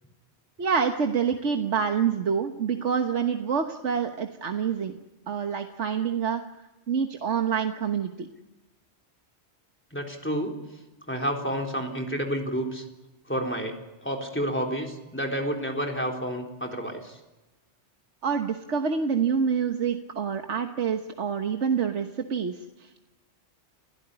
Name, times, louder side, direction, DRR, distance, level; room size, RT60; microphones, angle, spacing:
voice 1, 0.6-4.9 5.3-6.4 6.9-8.3 18.2-23.1, right 6 dB, 85° right, 5 dB, 1.6 m, -27 dB
voice 2, 9.9-10.6 11.1-12.8 13.3-17.2, equal, 10° left, 2 dB, 3.8 m, -30 dB
29.5 x 16.0 x 9.8 m, 1.1 s
omnidirectional pair, 1.2 m